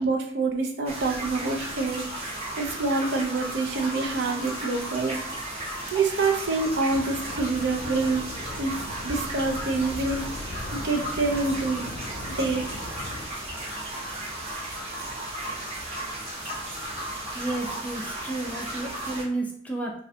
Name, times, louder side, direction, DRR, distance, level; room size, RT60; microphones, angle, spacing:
voice 1, 0.0-2.1 2.6-5.2 5.9-8.3 8.6-10.3 10.7-12.1 12.4-12.7, right 3 dB, 65° right, 2 dB, 0.4 m, -26 dB
sound 1, 0.9-19.2, right 1 dB, 35° right, 0.8 m, -35 dB
sound 2, 6.9-13.3, left 1 dB, 80° left, 0.5 m, -39 dB
voice 2, 17.3-19.9, right 2 dB, 10° left, -1 dB, 0.3 m, -32 dB
2.4 x 2.1 x 2.7 m, 0.68 s
head